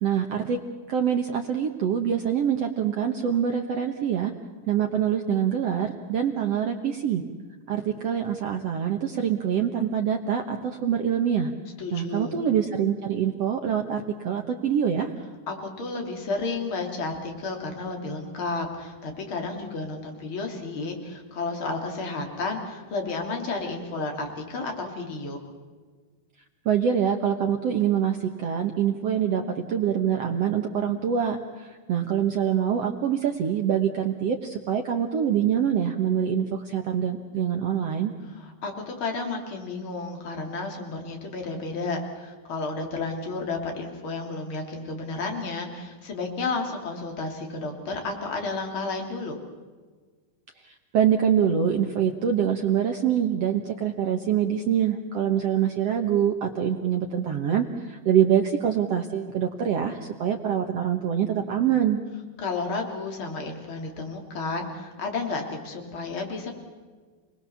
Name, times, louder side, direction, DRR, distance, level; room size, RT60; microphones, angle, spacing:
voice 1, 0.0-0.6 0.9-4.3 4.7-7.2 7.7-11.5 11.9-15.1 26.6-38.1 50.9-62.0, right 8 dB, 70° right, 4 dB, 1.5 m, -25 dB
voice 2, 11.8-12.4 15.5-25.4 38.3-49.4 62.4-66.5, left 3 dB, 35° left, 3 dB, 3.5 m, -32 dB
29.0 x 20.0 x 7.1 m, 1.4 s
omnidirectional pair, 4.4 m